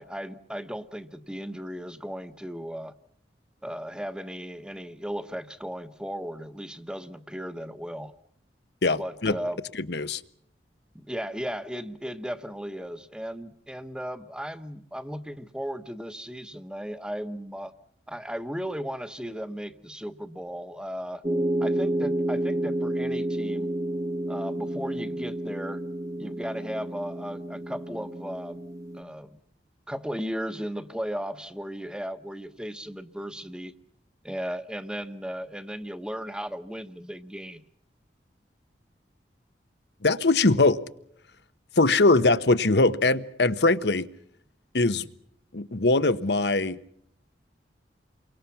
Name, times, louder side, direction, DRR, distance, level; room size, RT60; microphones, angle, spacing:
voice 1, 0.0-2.9 3.6-8.1 8.9-9.6 10.9-17.7 18.1-21.2 21.6-23.7 24.3-25.8 26.2-28.6 28.9-29.4 29.9-33.7 34.2-37.6, equal, 5° right, 11 dB, 1.1 m, -36 dB
voice 2, 8.8-9.4 9.8-10.2 40.0-40.8 41.8-44.1 44.7-45.1 45.5-46.8, left 3 dB, 75° left, 13 dB, 1.1 m, -22 dB
sound 1, 21.2-29.0, right 1 dB, 20° right, 1.4 m, -30 dB
29.5 x 24.0 x 5.9 m, 0.69 s
head